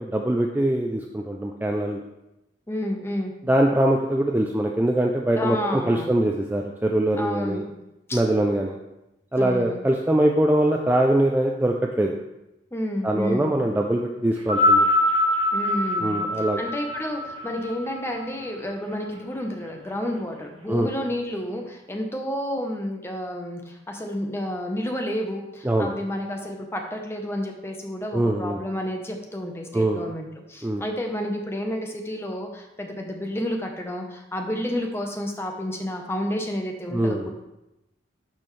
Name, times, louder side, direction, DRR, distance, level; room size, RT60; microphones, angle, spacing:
voice 1, 0.0-2.0 3.5-7.6 8.1-8.8 9.3-12.1 13.0-14.9 16.0-16.6 20.7-20.9 25.6-25.9 28.1-28.6 29.7-30.0 30.6-30.8 36.9-37.3, right 1 dB, 10° right, 1 dB, 0.3 m, -22 dB
voice 2, 2.7-3.3 5.4-6.1 7.1-7.7 8.1-8.2 9.4-9.8 12.7-13.5 15.5-37.3, left 1 dB, 15° left, 2 dB, 0.8 m, -30 dB
sound 1, 14.4-18.9 19.8-19.9, left 1 dB, 30° right, 1.4 m, -23 dB
12.0 x 4.3 x 3.2 m, 0.93 s
head